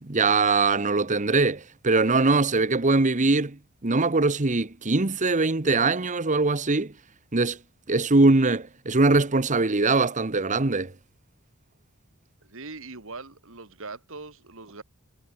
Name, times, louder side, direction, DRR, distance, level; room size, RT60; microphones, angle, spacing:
voice 1, 0.0-6.9 7.3-7.6 7.9-10.9, right 3 dB, 35° right, 1.1 m, -22 dB
voice 2, 12.4-14.8, right 3 dB, 65° right, 2.9 m, -41 dB
head